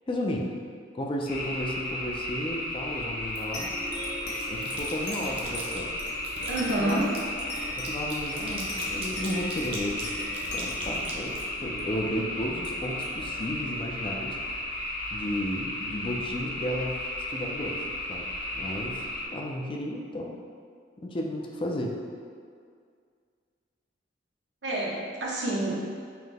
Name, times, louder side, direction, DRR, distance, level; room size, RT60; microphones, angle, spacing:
voice 1, 0.1-0.6 0.9-3.7 4.5-5.9 6.8-7.1 7.8-10.1 10.5-14.4 15.1-17.0 17.3-17.8 18.1-18.3 18.5-19.0 19.3-20.4 21.0-22.0, left 1 dB, 30° left, 0 dB, 0.4 m, -33 dB
sound 1, 1.3-19.2, left 1 dB, 55° left, 0.7 m, -34 dB
sound 2, 3.3-3.9 4.3-5.8 6.2-12.0, right 2 dB, 35° right, 0.7 m, -42 dB
sound 3, 3.5-14.6, left 1 dB, 80° left, 0.9 m, -41 dB
voice 2, 6.5-7.1 24.6-25.7, right 1 dB, 85° right, -4 dB, 0.8 m, -28 dB
5.6 x 2.1 x 3.4 m, 2.1 s
head